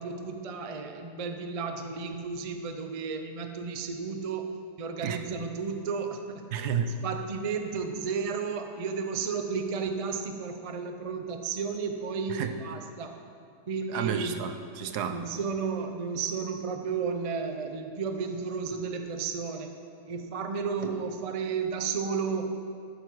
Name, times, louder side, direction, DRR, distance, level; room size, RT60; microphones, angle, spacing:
voice 1, 0.0-6.4 7.0-13.1 13.7-14.4 15.1-19.7 20.1-22.5, right 5 dB, 55° right, 5 dB, 0.3 m, -33 dB
voice 2, 6.5-6.9 12.3-12.5 13.9-15.2, right 7 dB, 75° right, 8 dB, 1.2 m, -31 dB
12.5 x 9.7 x 4.7 m, 2.4 s
omnidirectional pair, 1.8 m